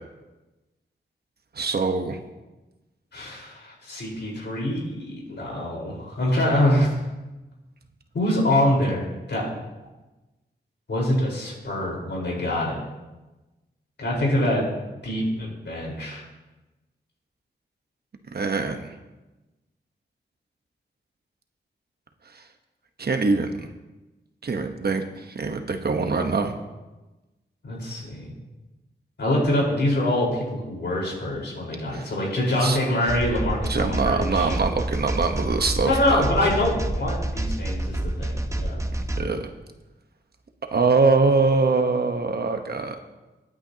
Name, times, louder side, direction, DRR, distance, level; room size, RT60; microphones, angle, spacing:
voice 1, 1.5-2.2 18.3-18.9 22.3-22.4 23.0-23.7 24.4-26.5 31.9-32.1 32.6-32.8 33.7-36.2 39.2-39.4 40.7-43.0, right 4 dB, 60° right, 6 dB, 1.1 m, -23 dB
voice 2, 3.1-7.0 8.1-9.5 10.9-12.8 14.0-14.7 15.0-16.2 27.6-28.3 29.2-34.5 35.8-38.8, left 1 dB, 70° left, -3 dB, 4.5 m, -25 dB
sound 1, 33.1-39.2, right 1 dB, 15° right, 0.8 m, -28 dB
21.5 x 9.0 x 2.9 m, 1.1 s
wide cardioid pair, 85°, 19 cm